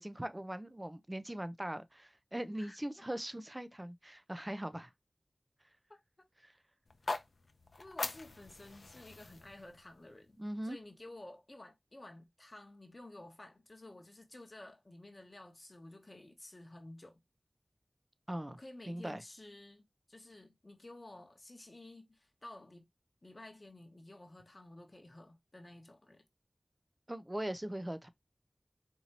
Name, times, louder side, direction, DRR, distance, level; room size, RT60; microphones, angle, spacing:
voice 1, 0.0-4.9 6.4-6.5 10.4-10.8 18.3-18.6 18.9-19.2 27.1-28.1, right 1 dB, 25° right, 0.5 m, -40 dB
voice 2, 2.6-3.0 5.9-6.0 7.8-10.4 10.6-17.2 18.5-22.9 23.2-26.2, left 1 dB, 45° left, 0.8 m, -53 dB
sound 1, 6.9-11.0, left 3 dB, 80° left, 0.5 m, -43 dB
4.5 x 2.7 x 2.8 m
wide cardioid pair, 40°, 0 cm